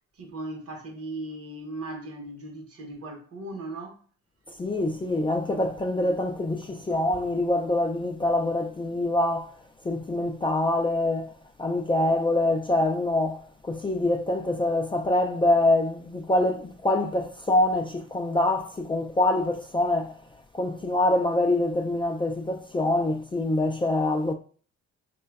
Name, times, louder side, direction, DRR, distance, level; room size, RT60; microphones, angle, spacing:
voice 1, 0.2-4.0, right 2 dB, 50° right, 1.0 m, -37 dB
voice 2, 4.6-9.5 9.8-11.3 11.6-20.1 20.5-24.3, left 1 dB, 15° left, 0.3 m, -25 dB
3.1 x 2.2 x 3.4 m
cardioid pair, 90°, 30 cm